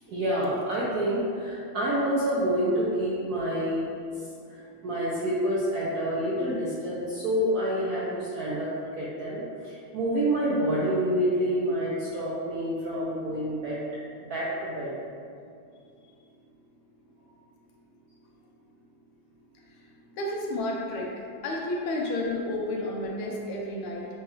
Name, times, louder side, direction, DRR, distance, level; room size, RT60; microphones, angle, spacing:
voice 1, 0.1-3.9 4.8-8.7 9.0-13.8 14.3-14.9, equal, 75° right, -7 dB, 0.8 m, -27 dB
voice 2, 20.2-24.1, left 1 dB, 85° left, -2 dB, 1.6 m, -31 dB
6.1 x 2.3 x 3.0 m, 2.4 s
omnidirectional pair, 2.3 m